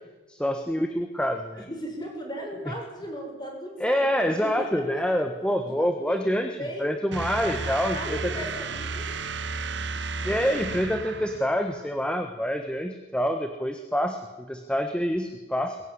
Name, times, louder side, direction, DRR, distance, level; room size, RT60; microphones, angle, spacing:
voice 1, 0.3-1.7 2.7-2.8 3.8-8.2 10.2-15.8, equal, 5° left, 6 dB, 1.3 m, -27 dB
voice 2, 1.7-5.0 5.6-6.2 6.6-6.8 7.4-9.1, equal, 20° left, 2 dB, 6.5 m, -36 dB
sound 1, 7.1-11.8, right 4 dB, 60° right, 1.6 m, -33 dB
22.0 x 21.0 x 9.9 m, 1.2 s
head